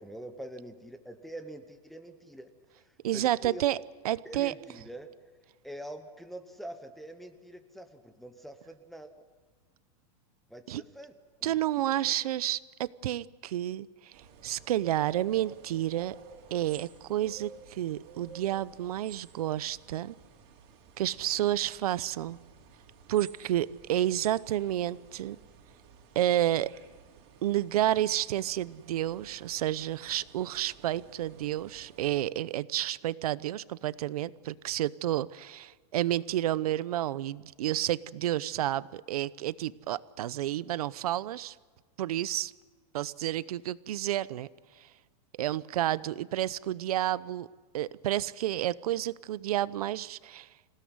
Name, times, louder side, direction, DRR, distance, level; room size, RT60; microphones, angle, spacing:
voice 1, 0.0-2.5 2.8-3.6 4.2-5.1 5.6-9.1 10.5-11.1 11.4-12.2, right 1 dB, ahead, 6 dB, 0.8 m, -45 dB
voice 2, 3.0-3.8 4.0-4.5 10.7-10.8 11.4-14.1 14.4-16.2 16.5-20.1 21.0-22.4 23.1-25.4 26.1-26.7 27.4-41.6 42.0-42.5 42.9-44.5 44.8-44.9 45.4-47.5 47.7-50.5, right 13 dB, 70° right, 18 dB, 0.8 m, -30 dB
sound 1, 14.1-32.2, right 6 dB, 40° right, 3.4 m, -53 dB
26.5 x 17.0 x 9.5 m, 1.4 s
supercardioid pair, 175°, 20 cm